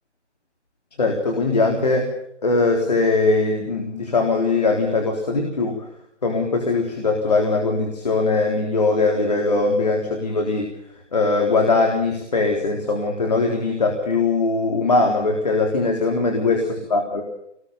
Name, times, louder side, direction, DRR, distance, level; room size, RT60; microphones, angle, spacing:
voice 1, 1.0-2.1 2.4-5.9 6.2-10.7 11.1-17.2, left 3 dB, 35° left, 2 dB, 3.8 m, -21 dB
27.0 x 20.0 x 5.4 m, 0.76 s
figure-of-eight pair, 175°, 36 cm